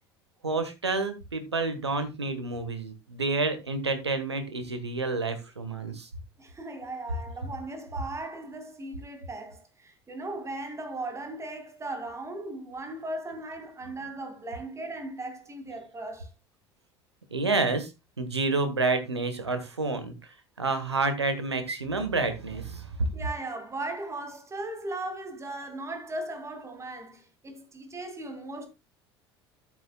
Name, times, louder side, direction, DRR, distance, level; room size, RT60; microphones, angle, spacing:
voice 1, 0.4-6.1 17.3-17.9 18.2-20.1 20.6-22.9, right 3 dB, 85° right, 1.5 m, -29 dB
voice 2, 6.4-16.3 23.1-28.7, right 2 dB, 20° right, 2.5 m, -37 dB
12.5 x 8.8 x 2.3 m
figure-of-eight pair, 65°, 14 cm